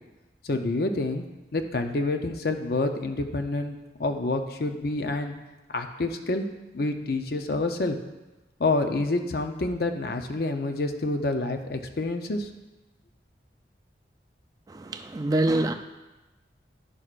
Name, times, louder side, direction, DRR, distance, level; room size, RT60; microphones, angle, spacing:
voice 1, 0.4-1.2 1.5-5.3 5.7-6.5 6.7-8.0 8.6-12.5, left 2 dB, 60° left, 6 dB, 0.6 m, -28 dB
voice 2, 14.7-15.7, right 2 dB, 20° right, 6 dB, 0.4 m, -25 dB
11.0 x 6.3 x 2.5 m, 1.1 s
head